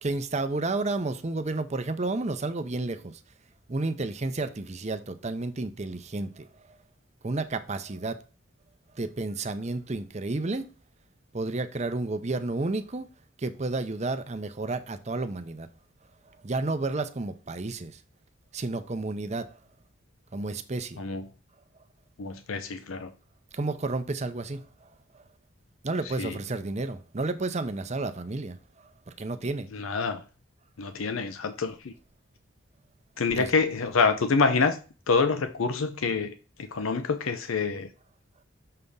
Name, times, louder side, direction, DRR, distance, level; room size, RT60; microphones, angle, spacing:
voice 1, 0.0-3.2 3.7-6.8 7.2-8.2 8.9-10.7 11.3-13.1 13.4-15.7 16.3-18.0 18.5-19.6 20.3-21.0 23.5-24.9 25.1-25.2 25.8-29.7 33.3-33.5, right 2 dB, 35° right, 0.7 m, -31 dB
voice 2, 22.2-23.1 26.2-26.3 29.8-30.2 30.8-31.9 33.2-34.8 35.1-36.3 36.7-37.9, left 4 dB, 90° left, 0.6 m, -26 dB
6.7 x 3.5 x 5.4 m
head